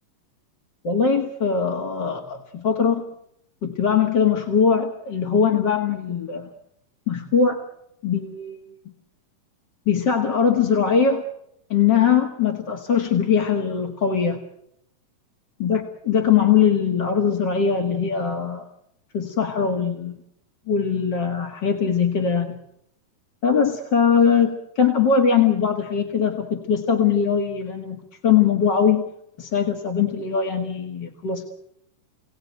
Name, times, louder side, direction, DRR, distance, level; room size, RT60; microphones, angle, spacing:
voice 1, 0.8-3.0 3.6-6.5 7.1-7.6 8.0-8.6 9.9-11.2 11.7-14.4 15.6-18.6 19.1-20.2 20.7-22.6 23.4-29.1 29.4-31.4, left 7 dB, 40° left, 4 dB, 1.8 m, -21 dB
28.0 x 18.5 x 9.3 m, 0.79 s
omnidirectional pair, 3.9 m